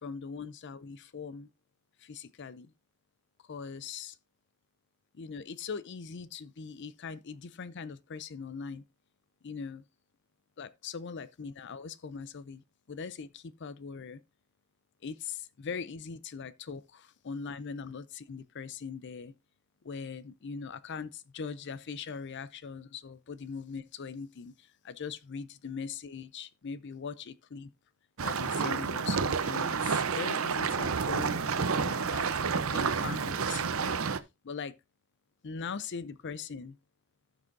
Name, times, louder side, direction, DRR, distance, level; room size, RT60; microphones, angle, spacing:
voice 1, 0.0-1.5 2.0-2.7 3.5-4.2 5.1-8.8 9.4-9.8 10.6-14.2 15.0-19.3 19.8-27.7 28.2-32.3 32.7-34.0 34.4-34.8 35.4-36.8, left 5 dB, 55° left, 0.5 m, -41 dB
sound 1, 28.2-34.2, right 5 dB, 65° right, 0.7 m, -30 dB
16.0 x 6.2 x 2.6 m
head